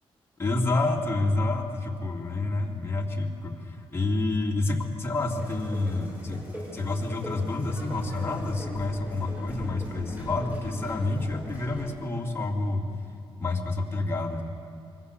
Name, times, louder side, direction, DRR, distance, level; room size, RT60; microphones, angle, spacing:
voice 1, 0.4-6.4 6.7-12.8 13.4-14.4, left 2 dB, 25° left, 0 dB, 2.9 m, -28 dB
sound 1, 5.3-11.9, equal, 15° right, 7.6 m, -41 dB
26.5 x 24.5 x 6.9 m, 2.5 s
cardioid pair, 120°, 10 cm